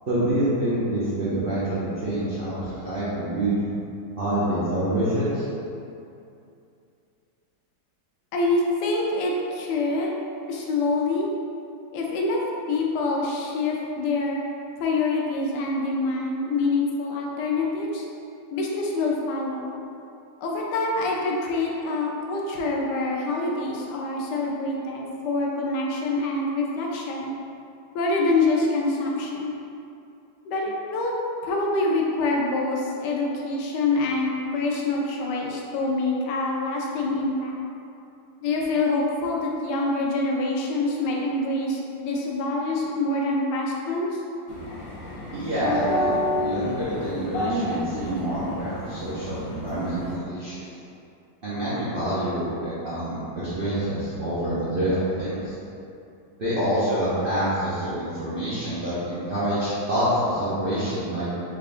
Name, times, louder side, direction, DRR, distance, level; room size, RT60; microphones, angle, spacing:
voice 1, 0.1-3.5 4.2-5.5 45.3-50.6 51.4-55.5 56.4-61.3, right 1 dB, 55° right, -12 dB, 0.6 m, -26 dB
voice 2, 8.3-10.2 10.5-11.3 11.9-12.4 12.7-14.4 14.8-18.1 18.5-19.7 20.4-27.3 27.9-29.5 30.5-31.1 31.4-37.6 38.4-44.2, left 2 dB, 85° left, -2 dB, 1.2 m, -25 dB
sound 1, 44.5-50.1, left 1 dB, 60° left, 1.1 m, -30 dB
3.4 x 3.4 x 2.5 m, 2.7 s
omnidirectional pair, 1.8 m